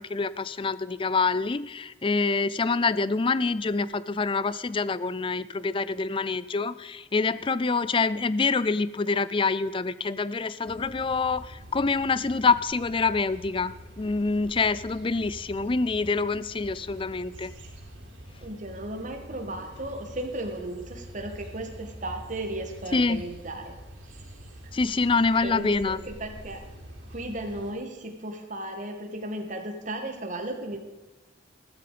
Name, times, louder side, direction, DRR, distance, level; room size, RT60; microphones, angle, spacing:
voice 1, 0.0-17.5 22.9-23.2 24.7-26.0, left 4 dB, 25° left, 17 dB, 0.4 m, -26 dB
sound 1, 10.7-27.7, equal, 80° right, 4.5 m, -45 dB
voice 2, 18.4-23.8 24.0-24.3 25.4-26.6 27.1-30.8, right 1 dB, 40° right, 4 dB, 2.1 m, -35 dB
15.0 x 13.5 x 5.2 m, 1.1 s
head